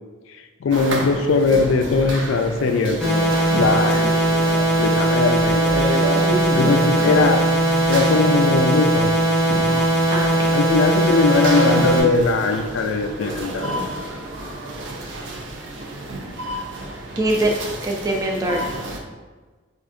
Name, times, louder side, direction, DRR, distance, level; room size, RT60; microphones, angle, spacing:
voice 1, 0.6-4.3 4.8-5.7 6.5-7.4 7.9-9.1 10.5-13.7, left 4 dB, 80° left, 6 dB, 0.3 m, -20 dB
sound 1, 0.7-19.0, right 1 dB, 70° right, 0.5 m, -30 dB
sound 2, 3.0-12.0, right 1 dB, ahead, 0.7 m, -19 dB
voice 2, 6.2-6.7 10.1-10.5 17.2-17.5 17.8-18.6, right 1 dB, 15° right, 1 dB, 0.4 m, -23 dB
4.6 x 2.5 x 2.5 m, 1.3 s
head